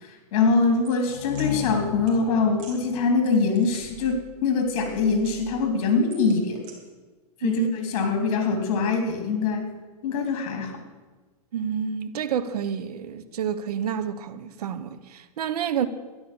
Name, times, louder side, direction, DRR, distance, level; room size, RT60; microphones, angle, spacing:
voice 1, 0.3-6.7 7.4-9.7 10.0-10.8, left 4 dB, 55° left, 3.6 m, -23 dB
sound 1, 0.8-1.5 2.1-2.2 2.5-2.8 3.3-4.4 4.6-5.6 6.1-6.7, right 6 dB, 55° right, 3.8 m, -46 dB
sound 2, 1.1-4.8, left 9 dB, 80° left, 1.4 m, -36 dB
voice 2, 7.4-7.7 11.5-15.9, right 8 dB, 75° right, 1.2 m, -28 dB
12.5 x 11.0 x 7.2 m
hypercardioid pair, 135°, 20 cm